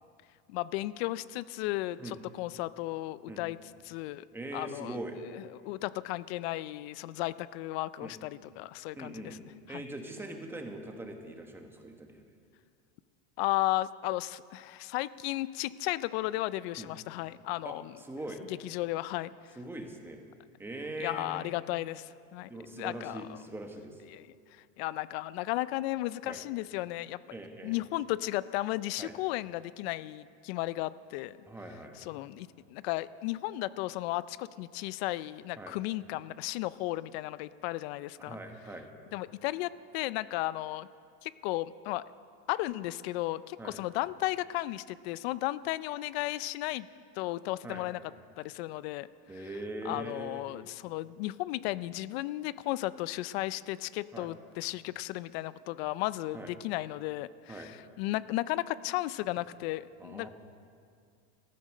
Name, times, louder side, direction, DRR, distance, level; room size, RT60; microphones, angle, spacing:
voice 1, 0.5-3.6 3.8-4.2 4.5-5.0 5.3-9.4 9.7-9.8 13.4-17.9 18.5-19.6 21.0-23.4 24.1-27.2 27.6-31.4 32.0-38.4 39.1-40.9 41.2-42.0 42.5-46.9 47.1-48.0 48.4-49.1 49.8-60.3, left 17 dB, 65° left, 17 dB, 0.5 m, -34 dB
voice 2, 4.3-5.2 8.0-8.1 9.0-9.4 9.7-12.2 16.8-16.9 17.6-18.4 19.6-20.2 20.6-21.4 22.5-24.0 26.2-26.4 27.3-27.8 29.0-29.1 31.5-32.0 35.6-35.8 38.2-38.9 43.6-43.8 47.6-47.9 49.3-50.4 54.1-54.3 56.3-56.5 57.5-57.7 60.0-60.3, right 1 dB, 5° right, 4 dB, 1.2 m, -42 dB
14.0 x 14.0 x 6.5 m, 2.2 s
supercardioid pair, 155°, 33 cm